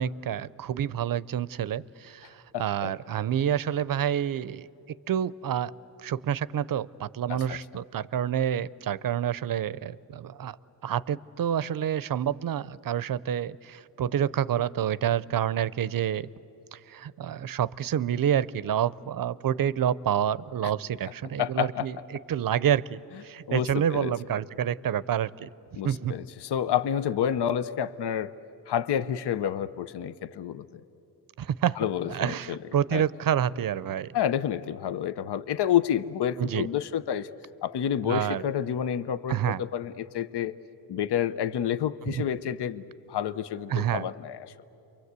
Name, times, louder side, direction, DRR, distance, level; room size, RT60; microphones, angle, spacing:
voice 1, 0.0-4.7 5.1-5.7 6.0-10.6 10.8-16.3 16.7-22.0 22.3-25.5 25.8-26.1 31.4-31.8 32.1-34.2 36.4-36.7 38.0-38.4 39.3-39.6 42.0-42.2 43.7-44.1, right 9 dB, 55° right, 19 dB, 0.6 m, -28 dB
voice 2, 2.5-2.9 7.3-7.6 20.6-20.7 21.4-21.9 23.5-24.1 25.7-28.3 28.7-30.8 31.8-32.6 32.9-33.0 34.1-37.3 37.6-40.6 40.9-44.5, left 9 dB, 80° left, 14 dB, 0.7 m, -29 dB
30.0 x 24.0 x 8.2 m, 3.0 s
wide cardioid pair, 115°, 40 cm